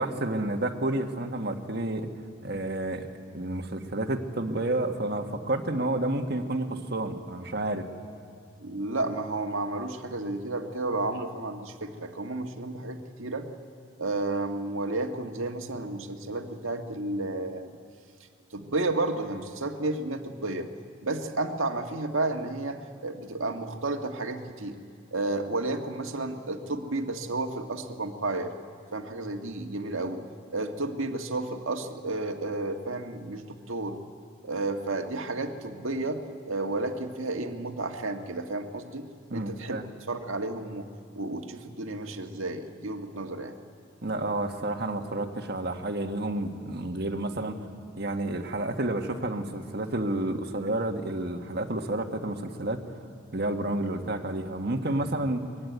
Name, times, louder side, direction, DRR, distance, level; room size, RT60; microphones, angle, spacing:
voice 1, 0.0-2.1 2.4-3.1 3.3-7.9 39.3-39.8 44.0-47.7 48.0-52.8 53.3-55.4, right 1 dB, 50° right, 5 dB, 1.6 m, -30 dB
voice 2, 8.6-13.5 14.0-17.7 18.5-20.7 21.0-24.8 25.1-28.5 28.9-30.2 30.5-34.0 34.4-39.8 40.1-40.9 41.1-43.5, right 2 dB, 80° right, 5 dB, 1.7 m, -32 dB
23.5 x 21.0 x 9.4 m, 2.2 s
head